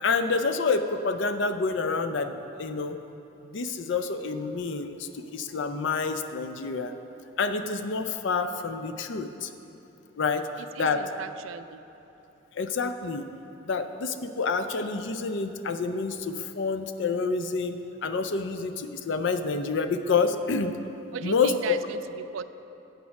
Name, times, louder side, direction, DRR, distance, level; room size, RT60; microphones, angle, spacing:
voice 1, 0.0-3.0 3.5-6.9 7.4-9.5 10.2-10.5 10.8-11.0 12.5-13.3 13.6-20.7 21.2-21.8, left 4 dB, 60° left, 9 dB, 0.4 m, -28 dB
voice 2, 10.6-11.8 21.1-22.4, right 7 dB, 70° right, 13 dB, 0.3 m, -38 dB
8.1 x 6.3 x 5.8 m, 2.9 s
head